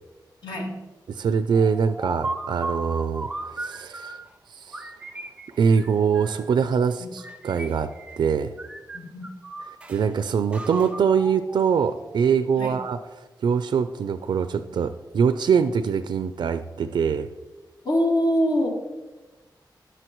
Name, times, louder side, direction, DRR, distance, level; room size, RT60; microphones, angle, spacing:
voice 1, 0.4-0.8 8.9-9.3 12.6-12.7 17.8-18.7, equal, 70° left, -1 dB, 2.3 m, -24 dB
voice 2, 1.1-4.2 4.5-4.9 5.6-7.9 8.2-8.5 9.6-17.3, right 6 dB, 75° right, 10 dB, 0.4 m, -23 dB
sound 1, 1.5-4.3 4.7-6.5 7.2-8.3 8.6-10.0 10.5-12.3, right 2 dB, 15° right, 0.5 m, -36 dB
19.0 x 6.4 x 3.1 m, 1.2 s
wide cardioid pair, 175°, 8 cm